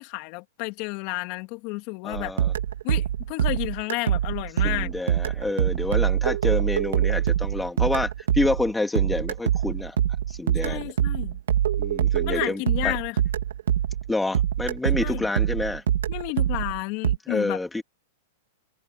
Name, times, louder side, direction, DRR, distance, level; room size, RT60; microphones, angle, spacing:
voice 1, 0.0-2.3 2.8-4.9 10.6-11.4 12.3-13.2 15.0-15.3 16.1-17.6, left 25 dB, 45° left, 2.8 m, -31 dB
voice 2, 2.0-2.5 4.6-10.0 10.3-10.9 11.8-13.0 14.1-15.8 17.3-17.8, left 2 dB, 5° left, 3.1 m, -28 dB
sound 1, 2.1-14.1 14.3-17.2, right 10 dB, 85° right, 2.1 m, -24 dB
hypercardioid pair, 135°, 0 cm